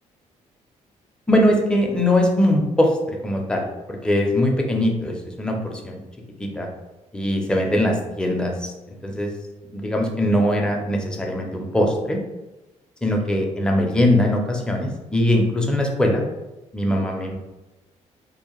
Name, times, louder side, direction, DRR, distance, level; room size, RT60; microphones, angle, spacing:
voice 1, 1.3-6.0 6.4-6.7 7.1-9.3 9.7-12.2 13.0-16.2 16.7-17.4, left 1 dB, 5° left, 1 dB, 0.4 m, -21 dB
2.6 x 2.1 x 2.9 m, 1.0 s
cardioid pair, 125°, 13 cm